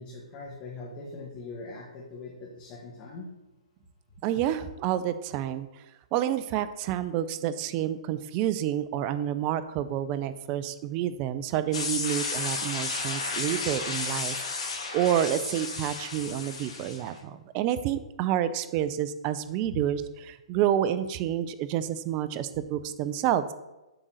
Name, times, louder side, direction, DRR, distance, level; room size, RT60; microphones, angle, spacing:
voice 1, 0.0-3.3 16.2-16.3, left 3 dB, 30° left, -2 dB, 1.4 m, -41 dB
voice 2, 4.2-5.7 6.1-23.5, right 11 dB, 30° right, 13 dB, 0.5 m, -29 dB
sound 1, 11.7-17.1, left 4 dB, 65° left, 2.2 m, -33 dB
7.8 x 3.9 x 6.3 m, 1.0 s
hypercardioid pair, 145°, 4 cm